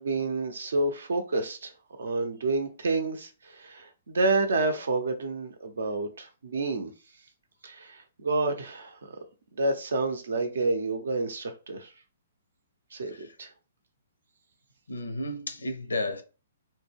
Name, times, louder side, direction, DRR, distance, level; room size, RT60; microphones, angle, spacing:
voice 1, 0.0-1.7 2.0-6.9 7.6-9.2 9.6-11.9 12.9-13.5, right 3 dB, 70° right, 0.6 m, -29 dB
voice 2, 14.9-16.2, left 1 dB, 80° left, 0.5 m, -32 dB
2.2 x 2.1 x 3.3 m
figure-of-eight pair, 125°, 0 cm